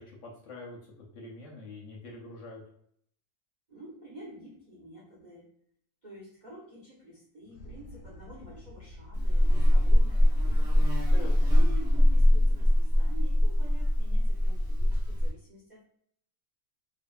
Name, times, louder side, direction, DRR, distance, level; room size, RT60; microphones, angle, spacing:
voice 1, 0.0-2.6 11.1-11.5, left 2 dB, 65° left, -2 dB, 0.8 m, -45 dB
voice 2, 3.7-5.5 6.0-11.0 11.5-15.8, equal, 75° right, -6 dB, 0.4 m, -49 dB
sound 1, 7.4-9.6, left 1 dB, 90° left, 1.1 m, -49 dB
Buzz, 9.1-15.3, left 1 dB, 40° right, 0.7 m, -22 dB
2.6 x 2.4 x 2.2 m, 0.67 s
omnidirectional pair, 1.7 m